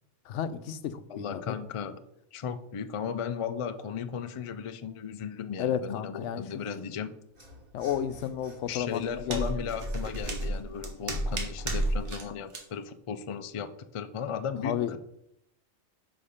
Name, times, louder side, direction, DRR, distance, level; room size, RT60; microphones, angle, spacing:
voice 1, 0.3-1.6 5.6-6.4 7.7-9.5 14.6-15.0, left 9 dB, 85° left, 12 dB, 0.9 m, -32 dB
voice 2, 1.1-2.0 2.3-7.1 8.7-15.0, left 7 dB, 60° left, 10 dB, 0.3 m, -36 dB
Mechanisms / Sawing, 7.3-12.0, equal, 50° right, 2.3 m, -52 dB
sound 1, 8.7-12.2 12.5-12.6, right 1 dB, 80° right, 1.5 m, -32 dB
5.7 x 5.0 x 5.6 m, 0.80 s
omnidirectional pair, 1.2 m